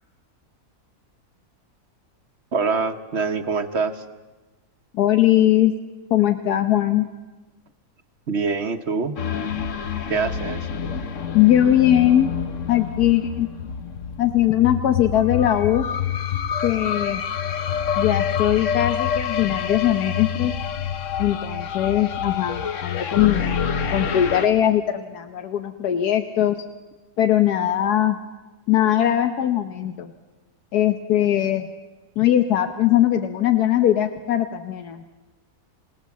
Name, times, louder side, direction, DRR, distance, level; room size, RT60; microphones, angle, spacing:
voice 1, 2.5-4.0 8.3-9.2 10.1-10.7, right 4 dB, 50° right, 9 dB, 1.3 m, -24 dB
voice 2, 4.9-5.7 6.1-7.1 11.3-12.3 12.7-13.5 14.2-15.9 16.6-17.2 18.0-20.5 21.2-23.5 23.9-26.6 27.2-28.2 28.7-30.1 30.7-31.7 32.2-35.0, left 12 dB, 85° left, 8 dB, 1.4 m, -20 dB
sound 1, 9.2-24.5, left 8 dB, 55° left, 1.3 m, -27 dB
28.0 x 17.5 x 7.2 m, 1.2 s
omnidirectional pair, 1.6 m